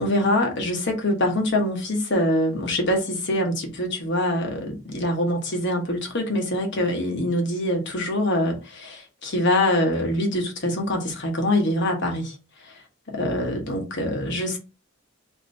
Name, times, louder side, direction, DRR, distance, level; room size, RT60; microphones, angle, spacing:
voice 1, 0.0-12.3 13.1-14.6, left 1 dB, 60° left, 1.2 m, -24 dB
2.9 x 2.6 x 4.1 m
head